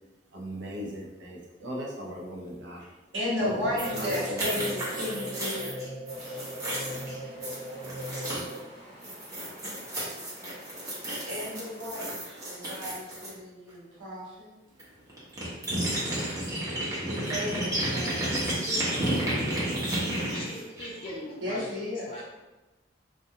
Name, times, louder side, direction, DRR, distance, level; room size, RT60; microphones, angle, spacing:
voice 1, 0.3-2.8 3.4-4.7, equal, 70° right, -3 dB, 0.6 m, -38 dB
voice 2, 2.8-5.8 6.1-6.5 11.3-14.5 17.0-18.3 19.6-19.9 20.2-20.4 21.4-22.1, left 1 dB, 90° right, -7 dB, 1.0 m, -34 dB
sound 1, 3.4-8.9, equal, 85° left, 0.7 m, -40 dB
sound 2, 3.8-8.6 9.0-13.3 14.8-14.9 15.1-21.1, right 1 dB, 20° right, 0.6 m, -32 dB
Stream, 6.0-11.8, equal, 40° right, 0.9 m, -51 dB
voice 3, 20.3-21.7 22.1-22.2, left 1 dB, 30° left, -6 dB, 0.4 m, -40 dB
2.3 x 2.3 x 2.7 m, 1.1 s
head